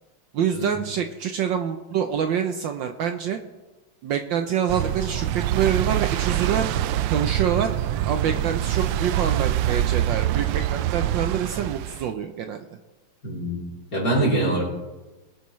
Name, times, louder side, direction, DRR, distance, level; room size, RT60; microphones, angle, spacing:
voice 1, 0.3-3.4 4.0-6.7 7.1-7.7 8.0-12.6, right 8 dB, 70° right, 7 dB, 1.2 m, -26 dB
sound 1, 4.7-12.1, right 13 dB, 90° right, 1.5 m, -25 dB
voice 2, 13.2-13.6 13.9-14.6, right 1 dB, 40° left, -4 dB, 3.8 m, -23 dB
21.5 x 9.3 x 3.1 m, 1.1 s
omnidirectional pair, 2.4 m